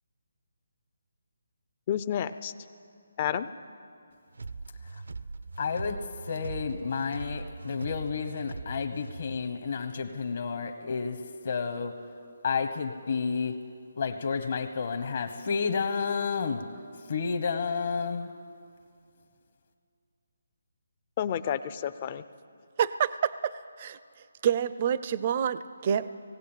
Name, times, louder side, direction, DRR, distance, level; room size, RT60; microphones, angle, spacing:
voice 1, 1.9-2.5 3.2-3.5 21.2-22.2, left 9 dB, 25° left, 13 dB, 0.5 m, -30 dB
sound 1, 4.4-9.4, right 3 dB, 80° right, 0.7 m, -40 dB
voice 2, 5.6-12.0 12.4-13.6 14.0-16.7 17.1-18.3, left 5 dB, 50° left, 6 dB, 1.3 m, -31 dB
voice 3, 22.8-23.5 23.8-24.0 24.4-26.1, right 8 dB, 30° right, 15 dB, 0.5 m, -27 dB
18.5 x 16.5 x 9.1 m, 2.4 s
hypercardioid pair, 170°, 0 cm